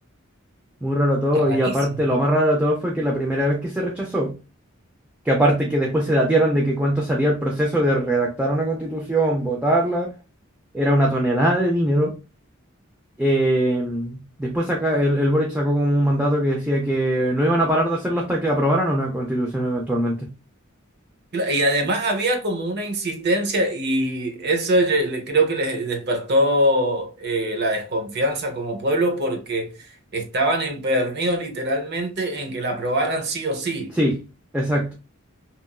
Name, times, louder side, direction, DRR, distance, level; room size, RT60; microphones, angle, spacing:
voice 1, 0.8-4.3 5.2-10.1 10.7-12.1 13.2-20.3 33.9-34.2 34.5-34.9, right 1 dB, 5° right, 0.4 m, -21 dB
voice 2, 1.3-2.0 21.3-33.9, right 1 dB, 55° right, 0.6 m, -23 dB
2.9 x 2.4 x 2.2 m
head